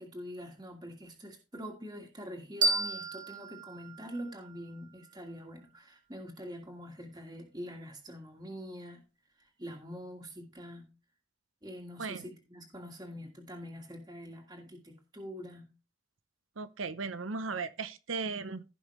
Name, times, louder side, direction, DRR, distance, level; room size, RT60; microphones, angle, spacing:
voice 1, 0.0-9.0 9.4-10.9 11.6-15.7, equal, 20° right, 1.6 m, -45 dB
sound 1, 2.6-5.4, right 2 dB, 65° right, 1.6 m, -34 dB
voice 2, 16.6-18.6, right 4 dB, 85° right, 0.8 m, -36 dB
16.0 x 5.5 x 3.1 m
head